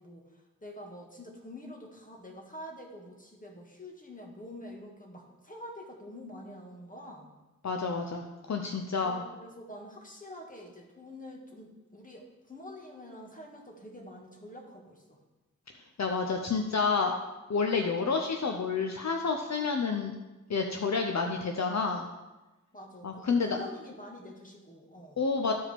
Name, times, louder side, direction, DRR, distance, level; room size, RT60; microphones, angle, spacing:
voice 1, 0.0-7.3 9.0-15.2 22.7-25.3, left 1 dB, 25° left, 0 dB, 1.8 m, -47 dB
voice 2, 7.6-9.2 16.0-17.1 17.5-20.2 20.5-22.0 23.0-23.6 25.2-25.5, left 4 dB, 60° left, 4 dB, 0.7 m, -29 dB
13.5 x 4.9 x 3.6 m, 1.1 s
wide cardioid pair, 60°, 31 cm